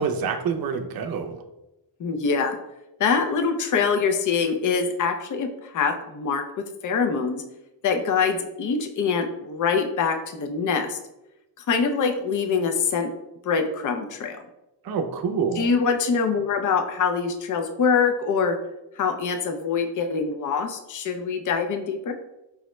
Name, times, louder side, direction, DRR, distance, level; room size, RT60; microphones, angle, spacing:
voice 1, 0.0-1.4 14.8-15.7, right 6 dB, 55° right, 5 dB, 0.5 m, -27 dB
voice 2, 2.0-2.6 3.0-6.4 6.8-7.4 7.8-11.0 11.6-13.1 13.4-14.4 15.6-18.6 19.0-22.1, left 5 dB, 45° left, 6 dB, 0.4 m, -24 dB
4.9 x 2.1 x 3.0 m, 0.93 s
wide cardioid pair, 110°, 44 cm